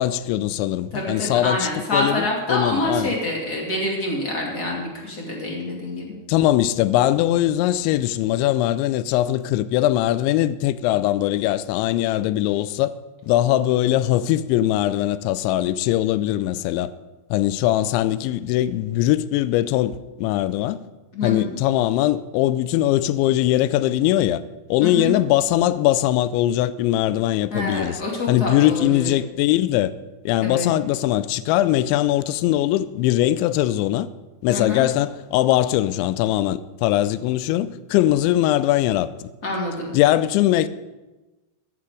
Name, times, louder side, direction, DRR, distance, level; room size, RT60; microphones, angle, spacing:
voice 1, 0.0-3.1 6.3-12.9 13.2-16.9 17.3-20.9 21.2-24.4 24.7-28.0 28.3-29.9 30.3-34.1 34.4-39.3 39.9-40.7, left 14 dB, 85° left, 2.8 m, -21 dB
voice 2, 0.9-6.2 21.1-21.6 24.8-25.1 27.5-29.1 30.4-30.7 34.5-34.8 39.4-39.9, left 2 dB, 30° left, 1.8 m, -26 dB
14.5 x 9.9 x 4.9 m
omnidirectional pair, 5.3 m